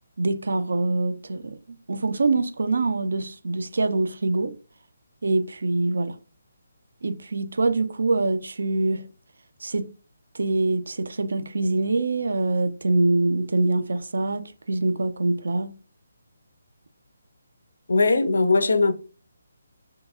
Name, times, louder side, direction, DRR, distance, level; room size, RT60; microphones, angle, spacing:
voice 1, 0.2-1.6 1.9-4.5 5.2-6.2 7.0-9.0 9.6-9.9 10.3-15.7, right 2 dB, 65° right, 0.3 m, -24 dB
voice 2, 17.9-18.9, left 3 dB, 80° left, 0.4 m, -19 dB
2.7 x 2.3 x 2.4 m
hypercardioid pair, 180°, 0 cm